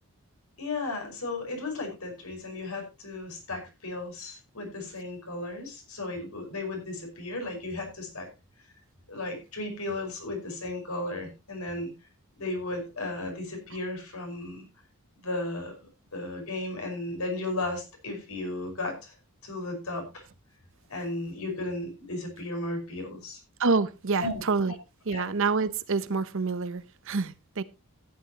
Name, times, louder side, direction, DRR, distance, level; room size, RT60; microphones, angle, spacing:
voice 1, 0.6-8.3 9.1-11.9 12.4-14.6 15.2-19.1 19.4-20.2 20.9-23.4 24.2-24.4 25.1-25.3, left 2 dB, 75° left, 5.4 m, -35 dB
voice 2, 23.6-24.7 25.1-27.6, right 4 dB, 60° right, 0.8 m, -27 dB
14.5 x 11.0 x 2.9 m
head